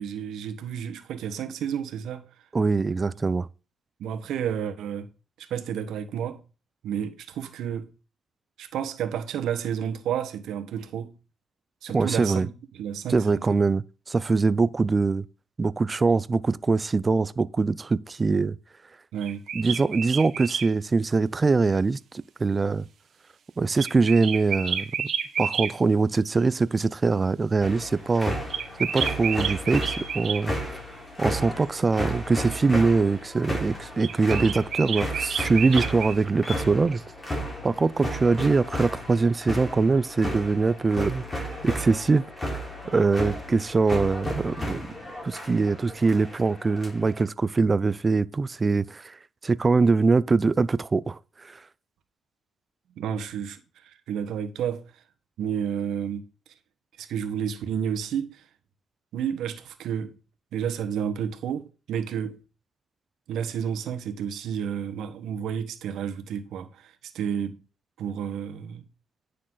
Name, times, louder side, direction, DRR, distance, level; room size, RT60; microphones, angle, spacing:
voice 1, 0.0-2.2 4.0-5.1 5.4-6.4 6.8-7.9 8.6-11.1 11.8-13.6 19.1-19.4 53.0-54.9 55.4-56.3 57.0-58.4 59.1-60.2 60.5-62.4 63.3-67.6 68.0-68.8, right 8 dB, 80° right, 1.3 m, -31 dB
voice 2, 2.5-3.5 11.9-12.5 13.1-15.2 15.6-18.6 19.5-22.0 22.4-22.8 23.6-25.1 25.4-28.3 28.8-30.8 31.2-37.0 37.6-42.2 42.9-44.8 45.2-49.2 49.4-51.6, right 4 dB, 30° right, 0.5 m, -23 dB
sound 1, 19.2-20.7 23.8-25.7 28.5-30.4 34.0-36.2, right 7 dB, 60° right, 1.4 m, -30 dB
sound 2, 27.6-47.2, equal, 20° left, 4.0 m, -34 dB
9.8 x 6.5 x 4.0 m
cardioid pair, 90°, 0 cm